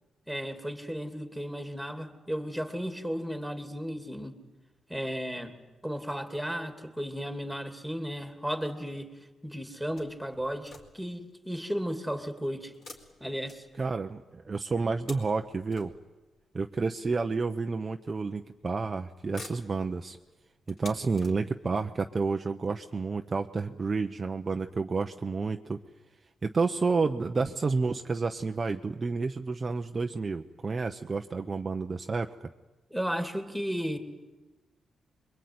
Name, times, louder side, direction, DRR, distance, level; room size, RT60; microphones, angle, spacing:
voice 1, 0.3-4.3 4.9-5.5 5.8-9.1 9.4-12.7 13.2-13.6 32.9-34.0, equal, ahead, 7 dB, 2.7 m, -34 dB
sound 1, 10.0-11.2 12.7-14.1 14.7-16.4 17.3-17.4 18.4-18.8 19.1-21.8 22.5-22.6 22.9-23.0, left 3 dB, 50° left, 4.5 m, -50 dB
voice 2, 13.8-15.9 16.5-20.2 20.7-25.8 26.4-32.3, right 4 dB, 25° right, 5 dB, 0.8 m, -30 dB
27.0 x 23.0 x 9.6 m, 1.2 s
cardioid pair, 145°, 0 cm